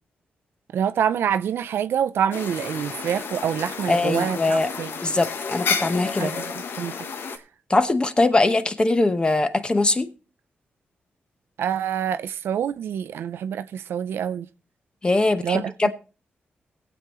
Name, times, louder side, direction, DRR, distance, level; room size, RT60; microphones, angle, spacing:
voice 1, 0.7-4.9 6.2-6.9 11.6-14.5 15.4-15.9, right 8 dB, 85° right, 0.5 m, -26 dB
sound 1, 2.3-7.4, left 5 dB, 70° left, 1.0 m, -31 dB
voice 2, 3.9-4.7 5.0-6.3 7.7-10.1 15.0-15.9, left 2 dB, 25° left, 0.9 m, -21 dB
19.5 x 8.0 x 3.0 m
cardioid pair, 90°, 4 cm